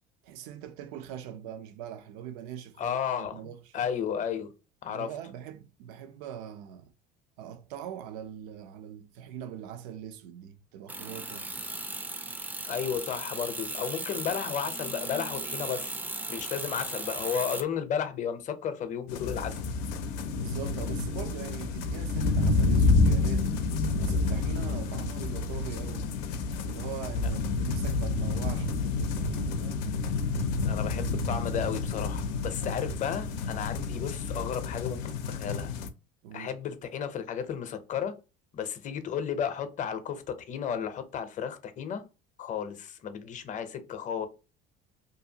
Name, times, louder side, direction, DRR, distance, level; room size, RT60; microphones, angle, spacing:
voice 1, 0.2-3.7 4.9-6.9 7.4-11.5 20.4-23.6 24.0-26.1 26.6-29.9 36.2-36.5, right 10 dB, 90° right, 0.5 m, -42 dB
voice 2, 2.8-4.5 4.8-5.1 12.6-15.9 16.3-19.6 30.6-35.7 36.3-38.1 38.5-42.0 42.4-44.3, left 8 dB, 40° left, 0.6 m, -33 dB
sound 1, 10.9-17.6, right 2 dB, 10° right, 0.3 m, -36 dB
sound 2, 19.1-35.9, left 3 dB, 85° left, 0.5 m, -29 dB
2.7 x 2.4 x 2.7 m
supercardioid pair, 110°, 20 cm